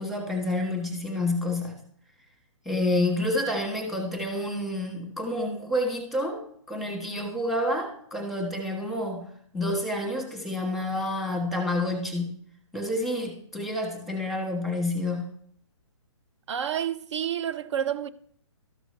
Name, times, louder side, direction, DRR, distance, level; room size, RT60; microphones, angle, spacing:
voice 1, 0.0-1.8 2.6-6.4 6.7-9.3 9.5-12.3 12.7-15.3, left 1 dB, ahead, 1.3 m, -29 dB
voice 2, 16.5-18.1, right 9 dB, 65° right, 0.7 m, -29 dB
13.0 x 6.1 x 3.2 m
hypercardioid pair, 150°, 16 cm